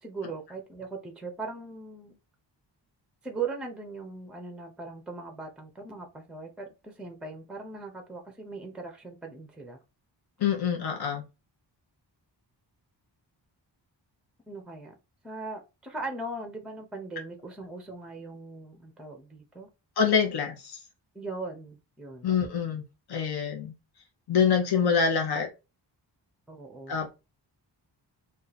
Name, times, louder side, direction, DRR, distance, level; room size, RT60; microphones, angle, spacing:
voice 1, 0.0-2.2 3.2-9.8 14.5-14.9 15.2-19.7 21.1-22.3 26.5-27.0, right 3 dB, ahead, 0.6 m, -39 dB
voice 2, 10.4-11.3 20.0-20.8 22.2-22.8 23.1-23.7 24.3-25.5 26.9-27.1, left 6 dB, 60° left, 0.8 m, -25 dB
2.7 x 2.5 x 3.9 m
wide cardioid pair, 145°, 45 cm